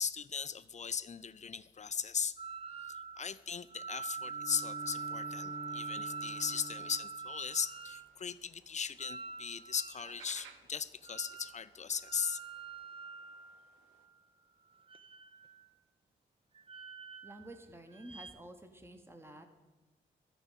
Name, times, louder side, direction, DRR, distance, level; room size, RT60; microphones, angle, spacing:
voice 1, 0.0-2.4 2.9-12.4, left 6 dB, 35° left, 0.5 m, -38 dB
sound 1, 2.4-3.3 3.7-8.1 9.0-10.4 11.0-11.6 11.9-14.2 14.8-15.6 16.5-17.6 17.9-18.3, right 5 dB, 25° right, 0.8 m, -44 dB
Bowed string instrument, 4.1-7.2, equal, 70° right, 2.1 m, -49 dB
sound 2, 4.5-14.1, right 7 dB, 85° right, 0.7 m, -64 dB
voice 2, 17.2-19.5, right 1 dB, 10° right, 1.1 m, -50 dB
10.0 x 5.0 x 7.3 m
supercardioid pair, 40°, 20 cm